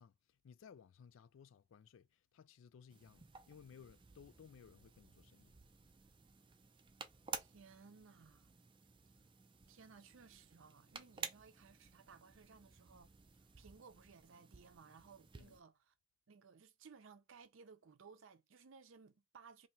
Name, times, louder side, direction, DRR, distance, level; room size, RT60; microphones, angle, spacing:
voice 1, 0.0-5.6 15.4-15.6, left 7 dB, 75° left, 0.3 m, -60 dB
sound 1, 2.9-15.6, right 5 dB, 25° right, 0.4 m, -53 dB
voice 2, 7.3-8.5 9.7-13.1 13.6-15.9 16.3-19.7, right 5 dB, 75° right, 0.6 m, -60 dB
2.8 x 2.7 x 4.3 m
head